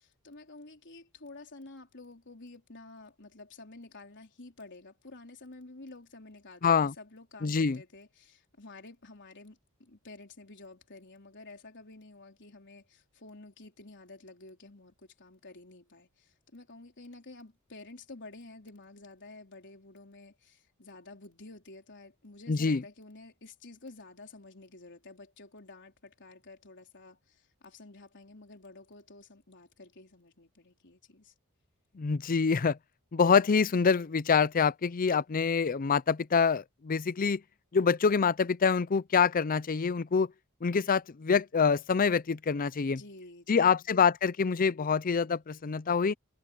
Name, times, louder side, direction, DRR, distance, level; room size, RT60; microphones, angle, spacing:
voice 1, 0.2-31.3 42.9-43.9, left 2 dB, 55° left, 4.1 m, -51 dB
voice 2, 6.6-6.9 7.4-7.8 22.5-22.8 32.0-32.8 33.1-37.4 37.7-40.3 40.6-43.0 43.5-46.1, left 5 dB, 40° left, 0.5 m, -26 dB
head